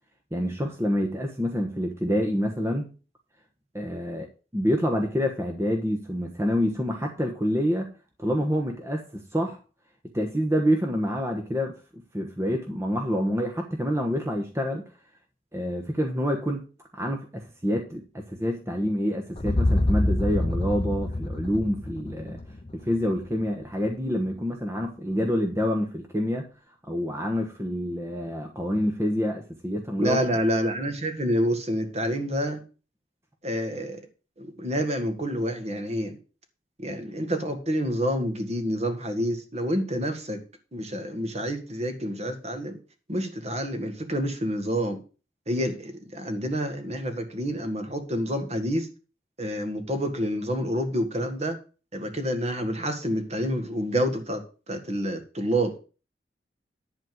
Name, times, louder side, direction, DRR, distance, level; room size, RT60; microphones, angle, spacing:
voice 1, 0.3-2.8 3.7-4.3 4.5-7.9 8.2-9.6 10.1-14.8 15.5-16.6 16.9-22.4 22.7-26.5 26.9-30.2, equal, 15° right, 3 dB, 1.2 m, -27 dB
sound 1, 19.4-23.4, left 1 dB, 30° left, 0.8 m, -27 dB
voice 2, 30.0-32.6 33.4-34.0 34.4-36.2 36.8-40.4 40.7-42.8 43.1-45.0 45.5-48.9 49.4-51.6 51.9-54.4 54.7-55.8, equal, 40° right, 6 dB, 1.8 m, -28 dB
11.0 x 4.3 x 7.8 m, 0.35 s
head